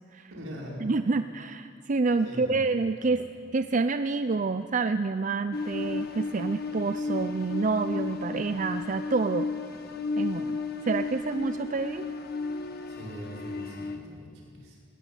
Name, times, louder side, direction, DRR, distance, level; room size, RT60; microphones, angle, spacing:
voice 1, 0.3-0.8 2.2-2.6 3.0-3.1 12.9-14.8, equal, 80° right, -3 dB, 5.4 m, -42 dB
voice 2, 0.8-3.2 3.5-9.5 10.2-10.6 10.8-12.1, right 3 dB, 40° right, 10 dB, 0.5 m, -28 dB
sound 1, 5.5-14.0, left 3 dB, 50° left, 1.5 m, -33 dB
20.0 x 14.5 x 9.3 m, 2.3 s
head